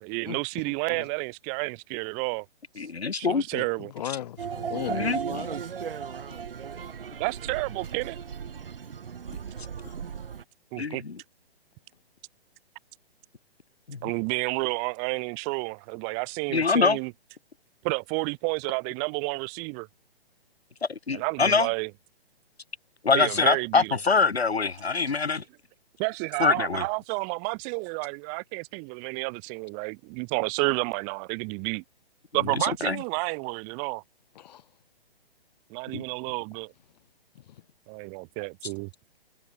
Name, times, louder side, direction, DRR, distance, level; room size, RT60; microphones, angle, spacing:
voice 1, 0.0-2.5 3.2-3.9 7.2-8.2 10.7-11.0 14.0-17.1 17.8-19.9 21.1-21.9 23.1-24.0 26.0-31.8 32.3-34.0 35.7-36.7 37.9-38.9, right 40 dB or more, 25° right, 1.7 m, -30 dB
voice 2, 0.7-1.1 3.3-5.5 6.3-6.4 9.8-9.9 34.3-34.6 37.3-37.4, left 11 dB, 40° left, 1.3 m, -38 dB
voice 3, 2.8-3.4 4.9-5.2 10.8-11.2 13.9-14.0 16.5-17.0 20.8-21.7 23.0-25.4 26.4-26.9 32.6-33.0 35.9-36.0, left 4 dB, 90° left, 1.2 m, -24 dB
sound 1, 4.4-10.4, right 7 dB, 65° right, 3.1 m, -36 dB
figure-of-eight pair, 135°, 31 cm